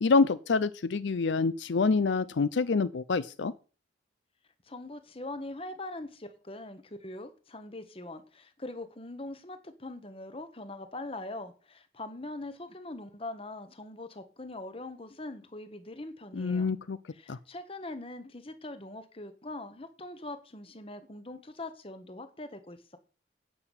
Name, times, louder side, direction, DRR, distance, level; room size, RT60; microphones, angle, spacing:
voice 1, 0.0-3.5 16.3-17.0 17.3-17.4, left 4 dB, 75° left, 0.5 m, -26 dB
voice 2, 4.7-16.7 17.1-23.0, left 2 dB, 30° left, 1.2 m, -42 dB
9.9 x 5.9 x 8.2 m
head